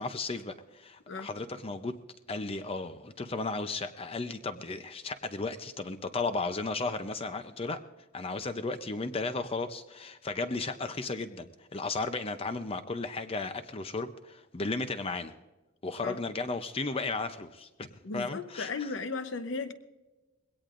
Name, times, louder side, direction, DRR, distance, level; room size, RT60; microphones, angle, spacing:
voice 1, 0.0-2.0 2.3-7.8 8.1-15.3 15.8-17.9 18.1-18.9, left 3 dB, 30° left, 0.6 m, -34 dB
voice 2, 18.0-19.7, left 4 dB, 70° left, 0.8 m, -35 dB
21.5 x 17.5 x 2.5 m
head